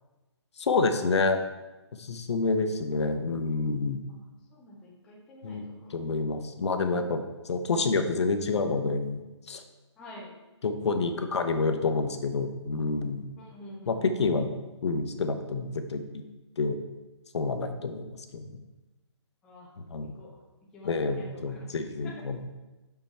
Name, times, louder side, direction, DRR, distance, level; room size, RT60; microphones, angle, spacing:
voice 1, 0.6-1.4 2.0-4.0 5.4-9.2 9.5-9.6 10.6-13.3 13.9-14.5 14.8-16.0 16.6-16.8 17.3-18.6 19.9-20.2 20.8-22.5, left 3 dB, 65° left, 8 dB, 0.8 m, -28 dB
voice 2, 4.1-6.0 10.0-10.4 13.4-14.5 19.4-19.7 20.1-20.4 20.7-21.7 22.0-22.2, left 1 dB, 5° left, -4 dB, 0.3 m, -48 dB
6.0 x 5.5 x 4.3 m, 1.1 s
hypercardioid pair, 165°, 15 cm